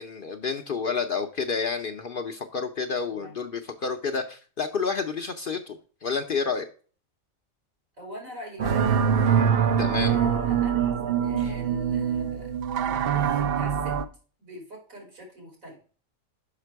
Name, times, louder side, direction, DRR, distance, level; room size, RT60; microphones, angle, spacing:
voice 1, 0.0-6.7 9.8-10.2 11.4-11.5, left 5 dB, 55° left, 6 dB, 0.6 m, -30 dB
voice 2, 8.0-12.5 12.8-14.0 14.4-15.8, left 1 dB, 80° right, 0 dB, 4.1 m, -43 dB
sound 1, 8.6-14.0, right 7 dB, 55° right, 0.7 m, -24 dB
5.8 x 5.8 x 4.5 m, 0.40 s
omnidirectional pair, 1.4 m